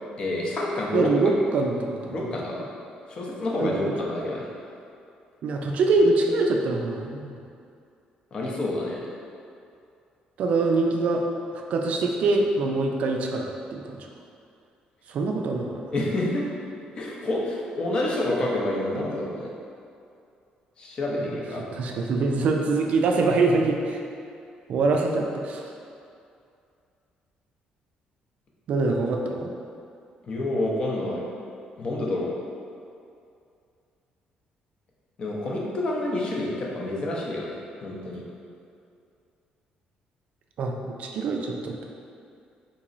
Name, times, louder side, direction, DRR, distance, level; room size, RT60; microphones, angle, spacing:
voice 1, 0.2-1.3 2.1-2.6 3.1-4.5 8.3-9.1 15.9-16.4 17.0-19.5 20.8-21.6 30.3-31.2 31.8-32.3 35.2-37.6 37.8-38.2, left 1 dB, 35° left, -3 dB, 0.5 m, -28 dB
voice 2, 0.9-2.4 3.6-3.8 5.4-7.4 10.4-11.2 11.7-14.1 15.1-15.9 21.7-24.0 24.7-25.6 28.7-29.5 40.6-41.9, right 3 dB, 55° right, 1 dB, 0.3 m, -24 dB
3.8 x 3.0 x 2.5 m, 2.5 s
cardioid pair, 160°, 3 cm